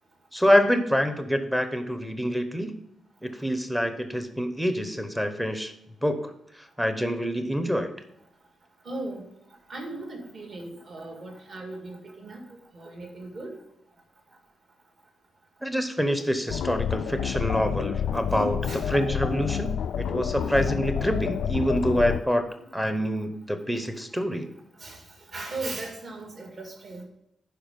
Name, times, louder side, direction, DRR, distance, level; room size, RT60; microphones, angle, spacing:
voice 1, 0.3-2.8 3.2-5.7 6.0-6.3 6.8-7.9 15.6-22.5 22.7-24.5, equal, 5° right, 8 dB, 0.8 m, -26 dB
voice 2, 8.9-9.2 9.7-12.5 12.7-13.5 18.7-18.8 24.8-25.0 25.3-27.0, right 2 dB, 40° right, 1 dB, 2.0 m, -37 dB
sound 1, 16.5-22.2, left 8 dB, 75° left, 0.3 m, -29 dB
11.5 x 4.8 x 5.2 m, 0.82 s
wide cardioid pair, 170°, 0 cm